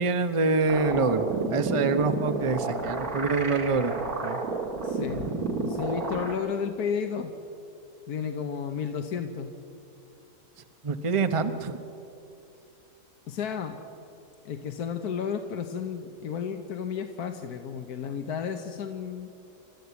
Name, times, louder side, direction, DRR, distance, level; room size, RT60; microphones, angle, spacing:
voice 1, 0.0-3.9 4.2-4.4 10.8-11.8, right 4 dB, 25° right, 10 dB, 0.7 m, -25 dB
sound 1, 0.7-6.3, right 3 dB, 60° right, 2.5 m, -31 dB
voice 2, 4.8-5.3 5.6-7.3 8.1-9.5 13.3-13.8 14.4-19.3, left 7 dB, 70° left, 5 dB, 1.5 m, -32 dB
29.0 x 13.0 x 8.2 m, 2.8 s
omnidirectional pair, 1.8 m